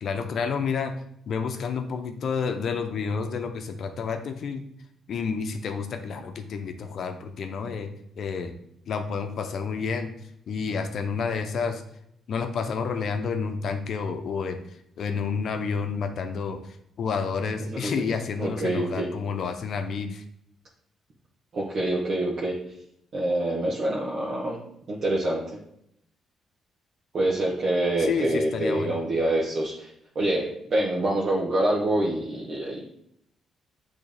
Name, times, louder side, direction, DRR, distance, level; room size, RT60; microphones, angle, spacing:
voice 1, 0.0-0.9 1.3-4.7 5.1-7.9 8.2-8.5 8.9-10.1 10.5-11.8 12.3-14.6 15.0-16.6 17.0-20.2 28.0-29.0, left 5 dB, 60° left, 6 dB, 0.8 m, -29 dB
voice 2, 17.7-18.0 18.4-19.1 21.5-22.6 23.1-24.6 24.9-25.4 27.1-29.9 30.1-32.8, right 1 dB, 55° right, -6 dB, 1.4 m, -26 dB
7.8 x 3.6 x 3.5 m, 0.74 s
cardioid pair, 90°, 0 cm